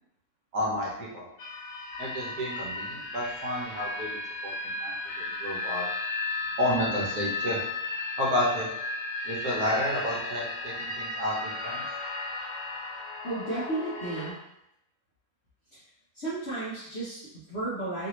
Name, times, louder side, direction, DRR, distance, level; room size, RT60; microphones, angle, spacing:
voice 1, 0.5-1.3 2.0-5.9 6.6-7.6 8.2-8.7 9.2-11.8, equal, 70° right, -3 dB, 1.3 m, -31 dB
sound 1, 1.4-14.3, left 3 dB, 70° left, 1.1 m, -35 dB
voice 2, 13.2-14.4 15.7-15.8 16.1-18.1, right 2 dB, 50° left, -10 dB, 1.0 m, -33 dB
3.2 x 2.6 x 2.9 m, 0.82 s
omnidirectional pair, 1.7 m